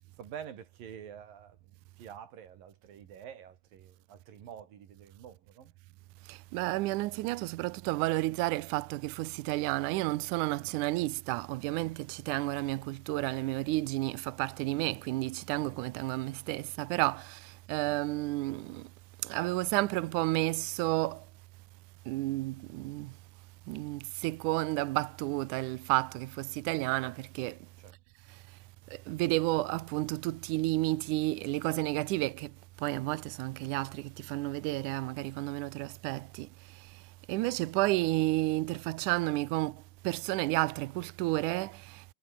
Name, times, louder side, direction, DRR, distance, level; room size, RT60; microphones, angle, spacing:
voice 1, 0.2-5.7 10.6-10.8 15.6-15.8 27.8-27.9, right 8 dB, 65° right, 4.3 m, -48 dB
voice 2, 6.3-18.9 19.2-21.3 22.1-23.2 23.7-27.6 28.3-28.4 28.9-37.0 37.3-42.1, right 20 dB, 90° right, 1.8 m, -31 dB
omnidirectional pair, 4.3 m